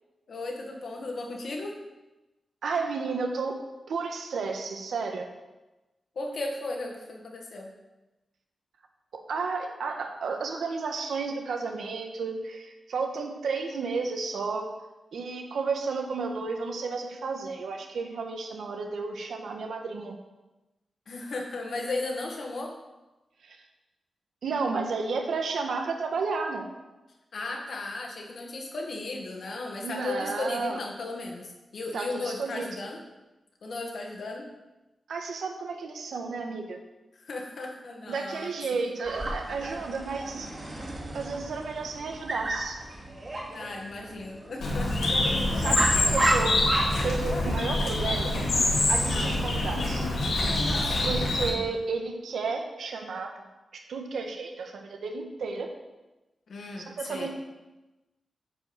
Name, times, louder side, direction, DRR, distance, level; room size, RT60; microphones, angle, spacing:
voice 1, 0.3-1.8 6.2-7.7 21.1-22.8 27.3-33.0 33.6-34.5 37.1-38.5 43.5-45.8 49.1-49.4 50.8-51.1 56.5-57.3, left 2 dB, 60° left, 1 dB, 1.9 m, -36 dB
voice 2, 2.6-3.6 3.9-5.3 9.1-14.7 15.1-20.1 23.4-23.6 24.4-26.6 29.8-30.8 31.9-32.7 35.1-36.8 38.1-40.5 41.1-42.8 45.5-46.5 47.0-48.3 48.9-50.1 51.0-53.3 53.7-55.7 56.9-57.3, right 4 dB, 85° right, 3 dB, 1.4 m, -32 dB
Dog, 39.0-49.6, right 1 dB, 30° right, 2.5 m, -33 dB
Bird, 44.6-51.5, left 2 dB, 80° left, 2.7 m, -26 dB
9.3 x 5.2 x 8.0 m, 1.1 s
wide cardioid pair, 160°, 0 cm